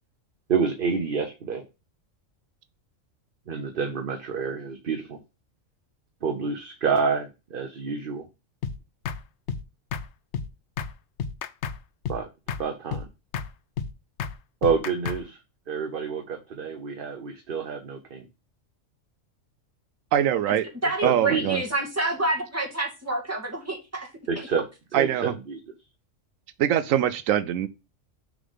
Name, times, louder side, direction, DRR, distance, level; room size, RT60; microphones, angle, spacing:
voice 1, 0.5-1.6 3.5-5.2 6.2-8.3 12.1-12.3 12.6-13.1 14.6-15.4 15.7-18.3 21.0-21.4 24.3-24.6 24.9-25.6, right 5 dB, 50° right, 0.9 m, -28 dB
sound 1, 8.6-8.8 9.1-9.2 9.5-9.6 9.9-10.1 10.3-10.5 10.8-10.9 11.2-11.8 12.0-12.2 12.5-12.6 12.9-13.1 13.3-13.5 13.8-13.9 14.2-14.4 14.6-15.2, left 6 dB, 65° left, 0.8 m, -31 dB
voice 2, 20.1-20.6 21.0-21.6 24.9-25.3 26.6-27.7, right 10 dB, 85° right, 1.0 m, -23 dB
voice 3, 20.8-24.1 24.4-24.5, right 2 dB, 10° right, 1.9 m, -28 dB
6.7 x 3.8 x 5.4 m
omnidirectional pair, 1.3 m